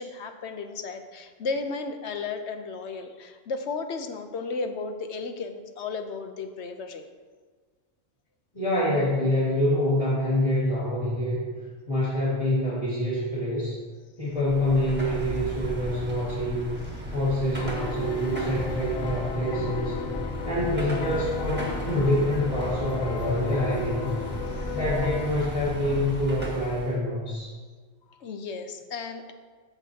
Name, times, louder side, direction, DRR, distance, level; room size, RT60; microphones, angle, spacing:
voice 1, 0.0-7.1 24.6-24.7 28.1-29.3, left 4 dB, 65° left, 7 dB, 0.9 m, -34 dB
voice 2, 8.5-11.4 11.9-13.7 14.2-16.8 17.1-20.0 20.4-24.1 24.7-27.5, left 1 dB, 25° left, -10 dB, 1.9 m, -26 dB
Car passing by / Traffic noise roadway noise / Engine, 14.3-27.0, equal, 10° right, 1.4 m, -34 dB
sound 1, 17.6-25.3, left 7 dB, 90° left, 1.0 m, -36 dB
14.0 x 6.0 x 2.8 m, 1.5 s
omnidirectional pair, 1.4 m